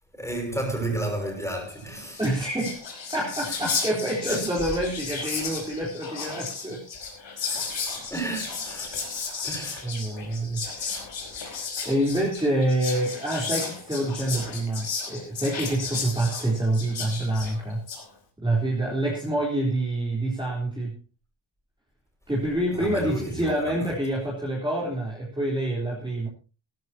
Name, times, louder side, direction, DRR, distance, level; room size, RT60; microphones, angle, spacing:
voice 1, 0.1-2.2 3.5-3.6 4.3-4.5 7.5-7.7 8.1-9.0 9.4-9.9 22.7-23.9, right 2 dB, 5° left, 6.1 m, -32 dB
Whispering, 1.8-1.9 2.1-18.0, left 5 dB, 70° left, 5.1 m, -34 dB
voice 2, 2.2-2.8 3.1-6.8 7.5-7.6 9.8-10.6 11.8-17.8 18.4-21.0 22.3-26.3, right 1 dB, 10° right, 3.9 m, -27 dB
17.5 x 15.0 x 2.9 m
wide cardioid pair, 150°, 46 cm